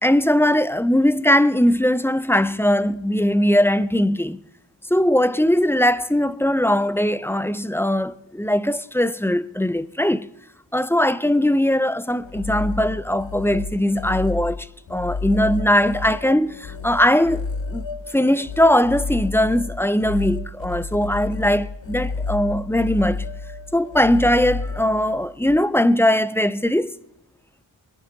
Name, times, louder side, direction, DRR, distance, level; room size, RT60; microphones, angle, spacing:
voice 1, 0.0-4.4 4.9-10.3 10.7-17.4 17.7-17.8 18.1-23.2 23.7-26.9, left 1 dB, 5° left, 0.4 m, -20 dB
sound 1, 12.1-25.6, left 4 dB, 70° left, 0.8 m, -31 dB
21.5 x 11.0 x 3.9 m
wide cardioid pair, 65°, 47 cm